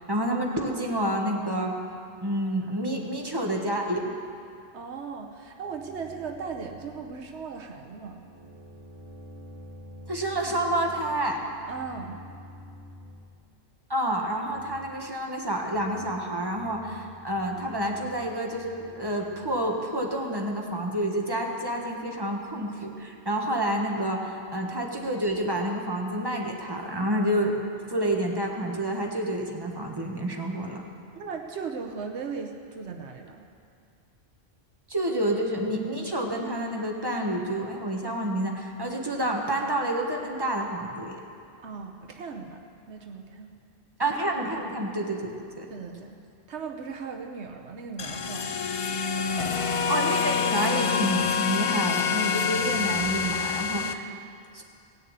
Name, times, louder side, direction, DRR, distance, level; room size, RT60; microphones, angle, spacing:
voice 1, 0.0-1.8 2.2-4.1 10.1-11.4 13.9-27.6 27.9-30.8 34.9-41.2 44.0-45.7 49.9-54.1 54.5-54.6, right 1 dB, 20° right, 1 dB, 1.4 m, -29 dB
voice 2, 4.7-8.2 11.7-12.2 31.1-33.4 41.6-42.6 42.9-43.6 45.7-46.2 46.5-48.6 49.2-49.6 53.7-54.0, right 5 dB, 85° right, 2 dB, 1.3 m, -38 dB
sound 1, 5.6-13.3 14.4-15.0 15.6-16.2 16.5-20.5, equal, 55° right, 1.9 m, -49 dB
sound 2, 48.0-53.9, left 6 dB, 40° left, 0.5 m, -27 dB
17.5 x 6.7 x 8.9 m, 2.4 s
omnidirectional pair, 1.1 m